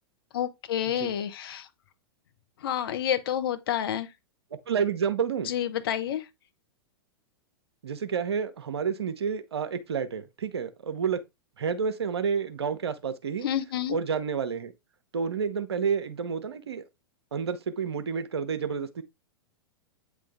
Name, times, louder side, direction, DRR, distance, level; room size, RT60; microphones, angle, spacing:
voice 1, 0.3-1.7 2.6-4.1 5.4-6.2 13.4-14.0, left 10 dB, 60° left, 1.2 m, -29 dB
voice 2, 4.7-5.5 7.8-11.2 11.6-13.5 13.9-14.7 15.1-16.8 17.3-19.0, right 6 dB, 75° right, 1.0 m, -29 dB
8.6 x 3.7 x 3.5 m
figure-of-eight pair, 105°, 14 cm